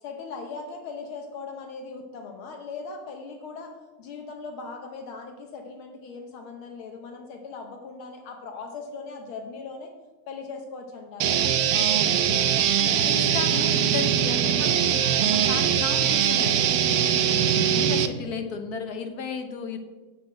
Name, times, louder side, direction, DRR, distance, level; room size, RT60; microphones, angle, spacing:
voice 1, 0.0-9.9 10.3-12.5 17.4-17.7, left 4 dB, 75° left, 3 dB, 1.8 m, -39 dB
sound 1, 11.2-18.1, right 9 dB, 85° right, 0.8 m, -22 dB
voice 2, 12.8-19.8, left 4 dB, 55° left, 6 dB, 1.4 m, -34 dB
8.8 x 6.0 x 7.7 m, 1.2 s
omnidirectional pair, 2.3 m